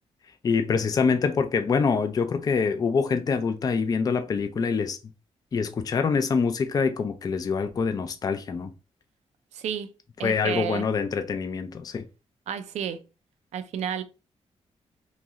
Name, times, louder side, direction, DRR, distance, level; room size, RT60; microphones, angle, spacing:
voice 1, 0.4-5.0 5.5-8.7 10.2-12.1, left 5 dB, 35° left, 0.3 m, -25 dB
voice 2, 9.5-9.9 10.2-10.8 12.5-13.0 13.5-14.0, right 8 dB, 85° right, 0.4 m, -31 dB
3.0 x 2.7 x 2.4 m
cardioid pair, 120°, 11 cm